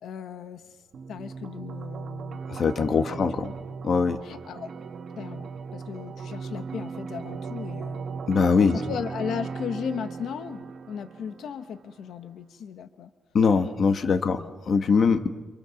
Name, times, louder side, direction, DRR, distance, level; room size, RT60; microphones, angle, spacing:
voice 1, 0.0-0.6 1.1-2.4 2.9-3.5 4.2-4.7 5.2-8.0 8.7-13.1 14.3-14.5, left 8 dB, 85° left, 10 dB, 1.2 m, -36 dB
sound 1, 0.9-11.9, right 5 dB, 50° right, 1.4 m, -37 dB
voice 2, 2.5-3.5 3.8-4.2 8.3-8.8 13.3-14.4 14.7-15.3, left 5 dB, 45° left, 8 dB, 1.5 m, -22 dB
27.5 x 27.0 x 7.2 m, 1.2 s
wide cardioid pair, 165°, 0 cm